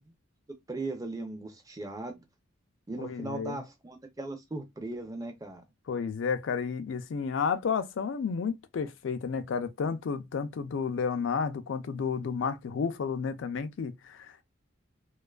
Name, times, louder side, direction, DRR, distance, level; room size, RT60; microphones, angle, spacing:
voice 1, 0.7-2.3 2.9-5.6, right 2 dB, 15° right, 0.4 m, -38 dB
voice 2, 3.0-3.6 5.9-14.4, left 6 dB, 65° left, 0.3 m, -31 dB
2.4 x 2.3 x 2.2 m
head